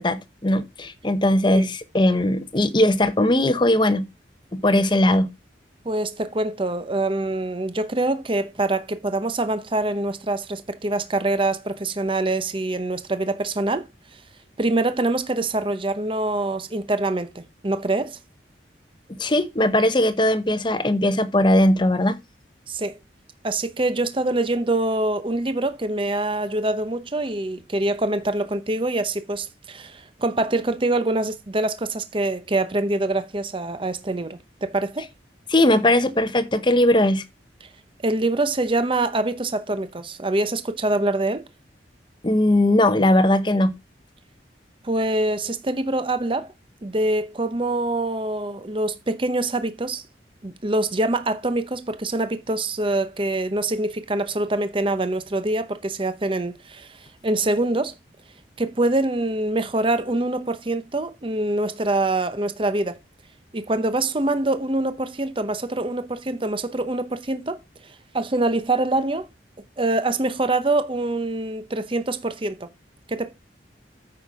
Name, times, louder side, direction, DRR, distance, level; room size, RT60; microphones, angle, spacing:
voice 1, 0.0-4.0 4.5-5.3 19.2-22.2 35.5-37.2 42.2-43.7, left 1 dB, 25° left, 0.9 m, -19 dB
voice 2, 5.8-13.8 14.6-18.2 22.7-23.0 23.4-35.0 38.0-41.4 44.8-46.5 46.8-50.0 50.4-57.9 58.6-63.0 63.5-67.6 68.1-69.3 69.8-72.7 73.1-73.3, right 2 dB, 30° right, 0.8 m, -24 dB
8.9 x 5.9 x 4.8 m
head